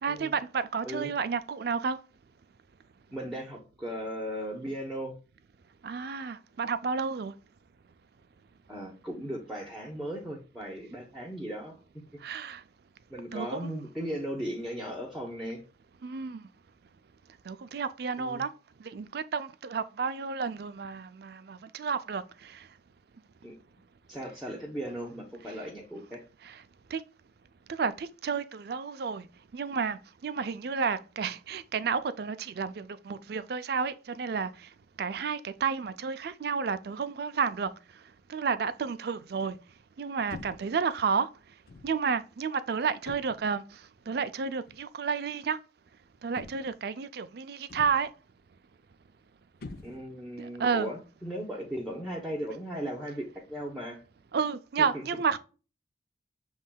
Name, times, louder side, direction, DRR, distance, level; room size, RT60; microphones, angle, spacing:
voice 1, 0.0-2.0 5.8-7.3 12.2-12.6 13.3-13.7 16.0-16.4 17.5-18.5 18.8-22.7 26.4-26.6 26.9-27.0 27.7-29.3 29.5-34.5 35.0-37.7 38.3-39.6 40.0-41.3 41.8-43.6 44.1-45.6 46.2-48.1 50.4-50.9 54.3-55.4, right 5 dB, 60° right, 0.4 m, -31 dB
voice 2, 3.1-5.2 8.7-11.8 13.1-15.6 18.2-18.4 23.4-23.6 24.1-26.2 49.8-54.0, equal, ahead, 0.9 m, -37 dB
sound 1, 40.3-40.8 41.7-42.0 43.1-43.6 44.7-44.9 46.4-46.9 47.7-48.2 49.6-50.3, left 3 dB, 55° left, 0.5 m, -46 dB
7.2 x 3.2 x 2.2 m
head